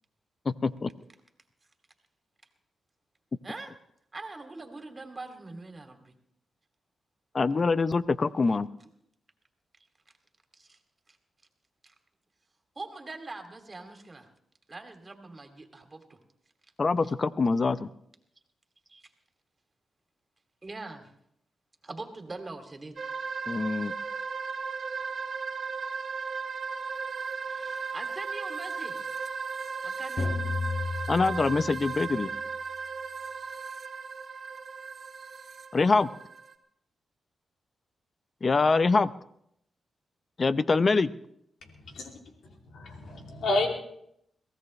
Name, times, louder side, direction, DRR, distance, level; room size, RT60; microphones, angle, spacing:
voice 1, 0.5-0.9 7.3-8.7 16.8-17.9 23.5-23.9 31.1-32.3 35.7-36.1 38.4-39.1 40.4-41.1, left 4 dB, 45° left, 15 dB, 0.7 m, -24 dB
voice 2, 3.4-3.7 4.1-6.1 10.6-10.8 11.8-11.9 12.8-14.3 14.7-16.0 17.0-17.1 18.9-19.1 20.6-21.1 21.8-23.0 27.5-29.0 29.8-30.3, right 3 dB, 35° right, 5 dB, 2.6 m, -42 dB
sound 1, 23.0-36.5, right 5 dB, 60° right, 1.6 m, -36 dB
sound 2, 30.2-32.1, left 3 dB, 60° left, 5.1 m, -33 dB
voice 3, 42.7-43.7, left 2 dB, 80° left, 2 dB, 2.8 m, -29 dB
22.5 x 16.0 x 3.3 m, 0.74 s
supercardioid pair, 55°, 0 cm